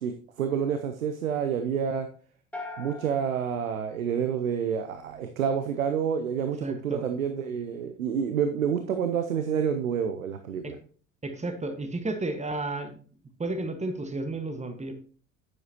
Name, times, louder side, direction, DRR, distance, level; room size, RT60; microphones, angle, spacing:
voice 1, 0.0-2.1 2.8-10.7, right 7 dB, 85° right, 7 dB, 0.7 m, -28 dB
sound 1, 2.5-4.8, left 2 dB, 5° left, 1.7 m, -43 dB
voice 2, 6.6-7.1 10.6-10.7 11.2-13.0 13.4-14.9, right 2 dB, 15° right, 7 dB, 1.5 m, -32 dB
9.5 x 7.9 x 2.9 m, 0.43 s
figure-of-eight pair, 60°, 40 cm